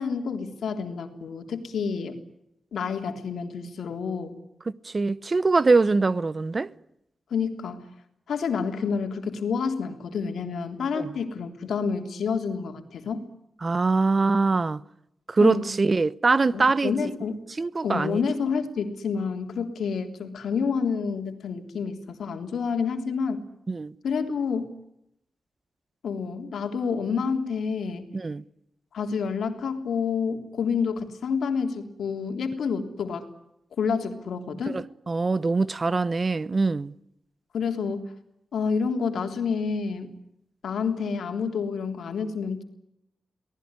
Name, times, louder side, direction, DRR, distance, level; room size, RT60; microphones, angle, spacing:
voice 1, 0.0-2.2 2.7-4.4 7.3-7.9 8.3-13.2 15.4-15.7 16.5-17.4 17.8-23.4 24.0-24.7 26.0-28.1 28.9-33.3 33.8-34.8 37.5-38.1 38.5-40.1 40.6-42.6, left 5 dB, 85° left, 3.5 m, -28 dB
voice 2, 4.8-6.7 10.9-11.1 13.6-14.8 15.3-16.9 17.6-18.2 23.7-23.9 28.1-28.4 34.7-36.9, right 3 dB, 45° right, 1.1 m, -23 dB
24.0 x 19.0 x 9.8 m
cardioid pair, 55°, 0 cm